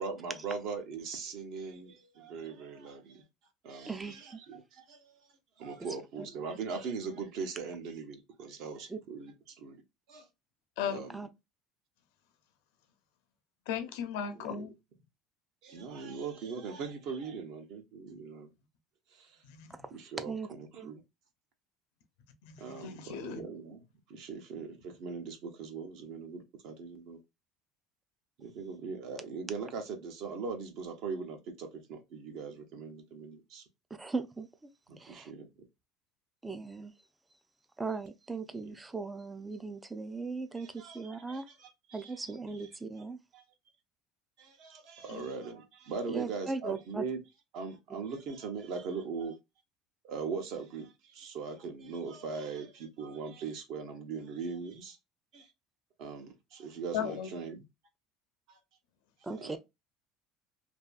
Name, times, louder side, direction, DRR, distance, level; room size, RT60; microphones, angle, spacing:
voice 1, 0.0-3.2 3.6-5.2 5.6-9.8 10.1-10.3 10.9-11.2 14.3-14.7 15.6-18.5 19.1-19.3 19.9-21.0 22.6-23.8 24.1-27.2 28.4-33.6 34.9-35.5 40.6-42.1 42.5-42.6 43.3-43.4 44.4-47.2 47.5-49.3 50.0-55.0 55.3-55.5 56.0-57.6 58.5-58.6 59.4-59.6, right 5 dB, 60° right, 0.9 m, -40 dB
voice 2, 3.9-4.4 6.2-6.3 8.9-9.0 11.1-11.3 20.3-20.5 20.8-20.9 34.0-34.5 35.0-35.3 36.4-36.9 37.8-41.5 41.9-43.2 46.1-47.0 59.2-59.6, right 4 dB, 10° right, 0.3 m, -38 dB
voice 3, 13.7-14.7 19.4-19.9 22.4-23.4 45.1-45.2 56.9-57.3, left 8 dB, 85° left, 0.7 m, -36 dB
2.6 x 2.6 x 2.3 m
cardioid pair, 160°, 0 cm